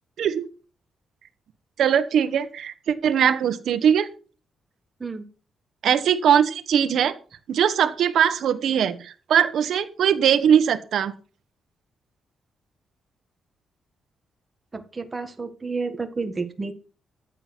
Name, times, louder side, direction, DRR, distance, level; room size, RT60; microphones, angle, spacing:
voice 1, 1.8-4.1 5.8-7.1 7.5-11.1, right 8 dB, 60° right, 10 dB, 1.5 m, -21 dB
voice 2, 14.7-16.7, right 4 dB, 20° right, 7 dB, 1.6 m, -30 dB
14.0 x 7.6 x 6.3 m, 0.37 s
wide cardioid pair, 170°, 0 cm